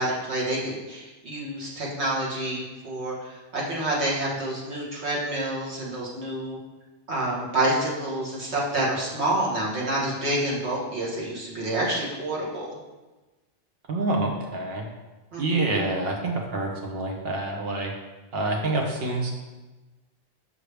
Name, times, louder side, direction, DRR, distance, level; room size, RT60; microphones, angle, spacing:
voice 1, 0.0-6.6 7.1-12.8 15.3-15.4, right 1 dB, 85° right, -4 dB, 1.7 m, -28 dB
voice 2, 13.9-14.9 15.4-17.9 18.3-19.3, right 2 dB, 65° right, 1 dB, 1.1 m, -27 dB
6.4 x 5.4 x 3.4 m, 1.2 s
omnidirectional pair, 1.1 m